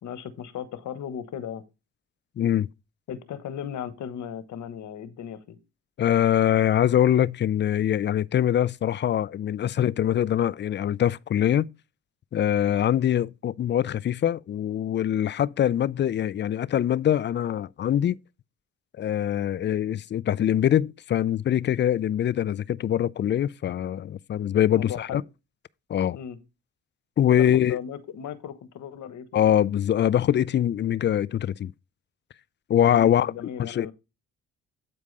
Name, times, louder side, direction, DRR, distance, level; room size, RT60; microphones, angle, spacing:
voice 1, 0.0-1.6 3.1-5.6 24.7-25.2 26.1-26.4 27.3-29.4 32.9-33.9, left 9 dB, 70° left, 1.2 m, -36 dB
voice 2, 2.4-2.7 6.0-11.7 12.3-18.2 19.0-25.2 25.9-26.2 27.2-27.8 29.3-31.7 32.7-33.3 33.6-33.9, left 10 dB, 40° left, 0.4 m, -23 dB
8.7 x 4.7 x 5.2 m
cardioid pair, 90°, 30 cm